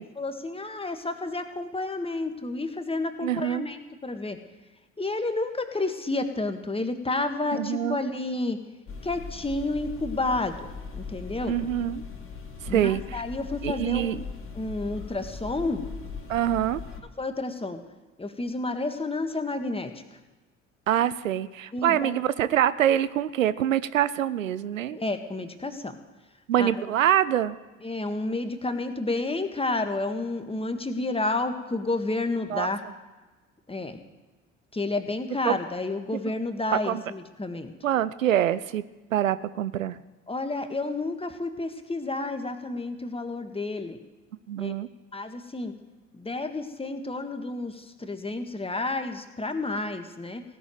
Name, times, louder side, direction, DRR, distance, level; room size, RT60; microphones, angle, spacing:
voice 1, 0.2-4.4 5.0-8.6 9.0-11.6 12.7-14.2 14.5-15.8 17.2-17.8 18.2-20.2 21.7-22.2 24.9-25.9 26.6-26.7 27.8-32.8 33.7-34.0 34.7-37.7 40.3-44.0 44.6-44.7 45.1-45.7 46.1-50.4, left 2 dB, 15° left, 7 dB, 1.7 m, -30 dB
voice 2, 3.2-3.7 7.5-8.0 11.5-12.0 12.6-13.2 13.6-14.2 16.3-16.8 20.9-25.0 26.5-27.6 32.5-32.7 35.5-35.6 36.8-37.0 37.8-38.8 39.1-40.0 44.5-44.9, right 11 dB, 85° right, 16 dB, 0.5 m, -25 dB
sound 1, 8.9-17.0, left 5 dB, 35° left, 2.7 m, -39 dB
17.0 x 6.9 x 9.2 m, 1.2 s
figure-of-eight pair, 55°, 38 cm